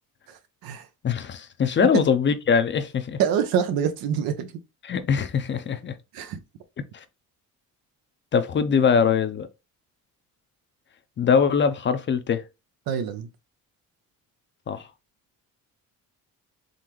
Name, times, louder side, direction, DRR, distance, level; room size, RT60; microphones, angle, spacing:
voice 1, 0.3-0.9 3.2-4.5 6.1-6.4 12.9-13.3, right 8 dB, 80° right, 0.7 m, -26 dB
voice 2, 1.0-3.2 4.8-5.9 6.9-7.0 8.3-9.5 11.2-12.4 14.7-14.8, left 6 dB, 35° left, 0.5 m, -22 dB
3.9 x 3.3 x 3.0 m
cardioid pair, 120°, 36 cm